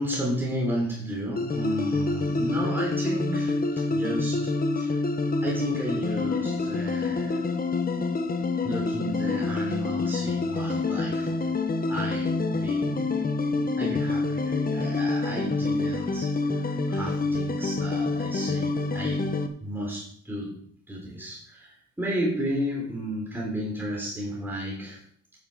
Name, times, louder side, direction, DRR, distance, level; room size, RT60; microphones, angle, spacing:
voice 1, 0.0-5.0 5.4-7.4 8.6-13.0 13.8-19.3 19.6-20.6 20.9-25.0, equal, 5° right, -4 dB, 4.0 m, -33 dB
sound 1, 1.4-19.5, left 3 dB, 30° left, 1.2 m, -27 dB
9.8 x 7.8 x 5.2 m, 0.63 s
cardioid pair, 90°, 30 cm